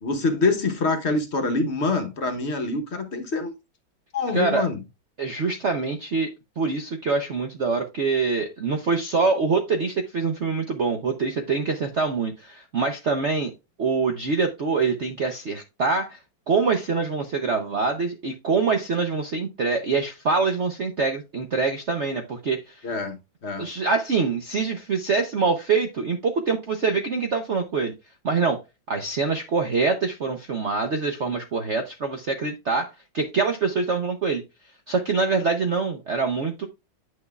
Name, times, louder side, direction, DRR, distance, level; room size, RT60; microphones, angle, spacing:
voice 1, 0.0-3.5 4.1-4.8 22.8-23.2 23.4-23.7, left 3 dB, 45° left, 1.0 m, -25 dB
voice 2, 4.3-4.7 5.2-6.3 6.6-13.5 13.8-16.2 16.5-22.9 23.5-27.9 28.2-28.6 28.9-34.4 34.9-36.7, right 4 dB, 65° right, 0.7 m, -25 dB
9.5 x 6.3 x 2.3 m
omnidirectional pair, 2.2 m